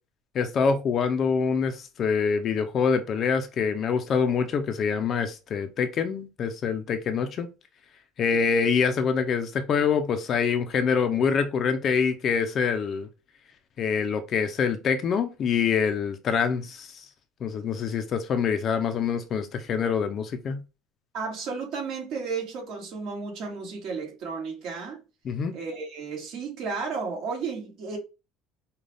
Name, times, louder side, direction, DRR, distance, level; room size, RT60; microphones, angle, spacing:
voice 1, 0.3-7.5 8.2-13.1 13.8-17.0 17.4-20.6 25.2-25.5, left 6 dB, 35° left, 0.5 m, -25 dB
voice 2, 21.1-25.0 25.5-28.0, right 5 dB, 55° right, 2.1 m, -33 dB
5.3 x 2.3 x 3.4 m
cardioid pair, 155°, 0 cm